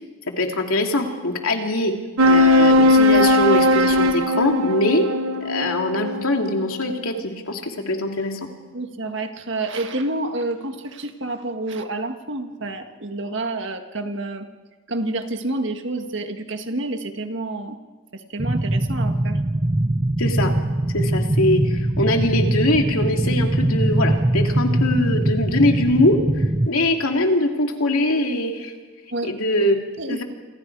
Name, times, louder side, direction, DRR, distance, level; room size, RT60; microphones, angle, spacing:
voice 1, 0.4-1.9 2.2-5.1 5.4-8.5 20.2-20.5 20.9-28.7 29.2-29.8 30.1-30.2, left 1 dB, 80° left, 3 dB, 2.8 m, -22 dB
sound 1, 2.2-7.0, left 1 dB, 80° right, 1.2 m, -18 dB
voice 2, 8.7-14.5 14.9-17.8 18.1-19.4 29.1-29.3 30.0-30.2, right 2 dB, 55° right, 6 dB, 1.8 m, -28 dB
sound 2, 18.4-26.7, right 1 dB, 20° right, 0.7 m, -21 dB
28.5 x 26.5 x 4.8 m, 1.3 s
head